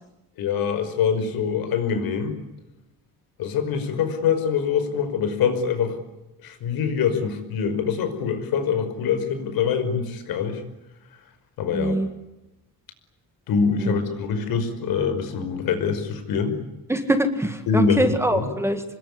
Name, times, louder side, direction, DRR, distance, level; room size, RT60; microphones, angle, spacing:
voice 1, 0.4-2.4 3.4-6.0 6.4-10.6 11.6-11.9 13.5-16.6 17.7-18.5, left 6 dB, 70° left, 9 dB, 5.4 m, -24 dB
voice 2, 11.7-12.1 13.8-14.0 16.9-18.8, right 1 dB, 5° right, 7 dB, 1.8 m, -23 dB
27.0 x 21.0 x 9.9 m, 0.97 s
cardioid pair, 175°, 37 cm